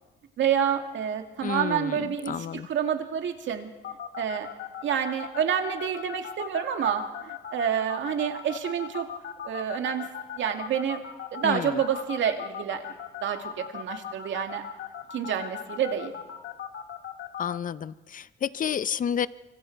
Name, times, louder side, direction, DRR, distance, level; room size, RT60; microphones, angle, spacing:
voice 1, 0.4-3.7 4.2-4.5 4.8-9.1 9.4-10.1 10.4-11.0 11.3-12.9 13.2-14.7 15.1-16.1, right 8 dB, 70° right, 5 dB, 2.3 m, -28 dB
voice 2, 1.4-2.0 2.3-2.7 11.4-11.8 17.4-19.3, left 8 dB, 40° left, 16 dB, 0.7 m, -30 dB
sound 1, 3.8-17.6, left 9 dB, 65° left, 1.9 m, -37 dB
25.5 x 25.0 x 4.7 m, 1.2 s
cardioid pair, 90°, 20 cm